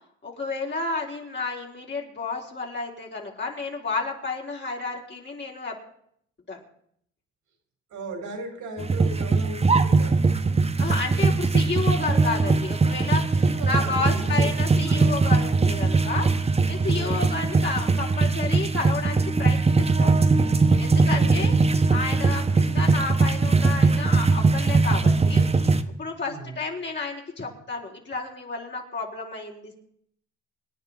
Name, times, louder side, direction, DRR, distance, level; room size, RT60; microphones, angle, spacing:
voice 1, 0.2-5.8 6.5-6.6 10.8-16.3 16.7-20.2 20.8-21.5 21.9-25.4 25.9-29.8, left 3 dB, 35° left, -1 dB, 4.3 m, -31 dB
voice 2, 7.9-10.2 13.3-15.1 16.8-17.2 21.1-21.6 26.2-26.6, right 2 dB, 80° right, 3 dB, 4.4 m, -37 dB
sound 1, 8.8-25.8, right 3 dB, 20° right, 1.1 m, -21 dB
26.0 x 10.0 x 4.3 m, 0.68 s
cardioid pair, 90°, 30 cm